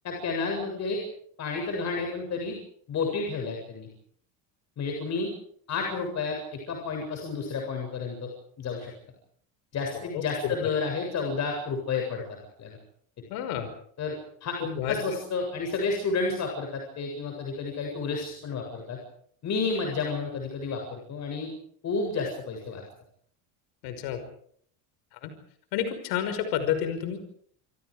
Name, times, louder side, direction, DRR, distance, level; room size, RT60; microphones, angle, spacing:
voice 1, 0.0-1.0 1.4-2.6 2.9-3.9 4.8-5.3 5.7-8.3 8.6-8.9 9.7-12.2 12.6-12.8 14.0-19.0 19.4-21.5 21.8-22.8, left 4 dB, 45° left, 2 dB, 7.7 m, -31 dB
voice 2, 9.9-10.7 13.3-13.7 14.6-15.0 23.8-24.2 25.1-25.3 25.7-27.2, left 9 dB, 75° left, 9 dB, 5.6 m, -30 dB
28.0 x 26.5 x 5.1 m, 0.63 s
cardioid pair, 120°, 39 cm